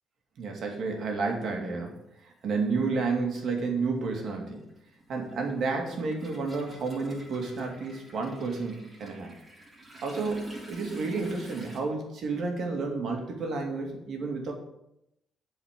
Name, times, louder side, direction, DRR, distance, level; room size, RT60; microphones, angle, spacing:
voice 1, 0.4-4.7 5.1-9.3 10.0-14.5, right 4 dB, 65° right, 2 dB, 2.3 m, -31 dB
Toilet flush, 1.3-1.4 2.7-2.8 3.2-11.8, right 1 dB, 30° right, 3.4 m, -48 dB
8.3 x 4.8 x 7.5 m, 0.83 s
cardioid pair, 90°, 0 cm